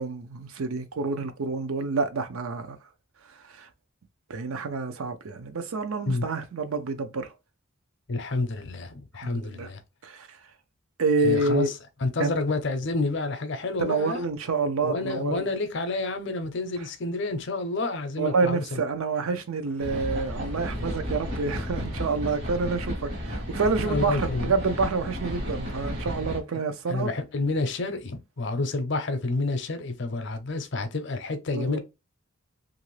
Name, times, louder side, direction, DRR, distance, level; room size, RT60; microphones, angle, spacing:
voice 1, 0.0-2.8 3.5-3.7 4.3-7.3 9.2-9.7 10.0-10.3 11.0-11.7 12.2-12.3 13.8-15.5 18.2-27.1 31.5-31.8, right 4 dB, 80° right, 0.5 m, -28 dB
voice 2, 8.1-9.8 11.2-11.7 12.0-14.2 14.8-18.8 23.8-24.5 26.9-31.8, left 3 dB, 55° left, 0.5 m, -29 dB
sound 1, 19.6-22.2, equal, 5° left, 0.4 m, -46 dB
sound 2, 19.8-26.4, equal, 55° right, 1.1 m, -33 dB
2.8 x 2.5 x 3.1 m
head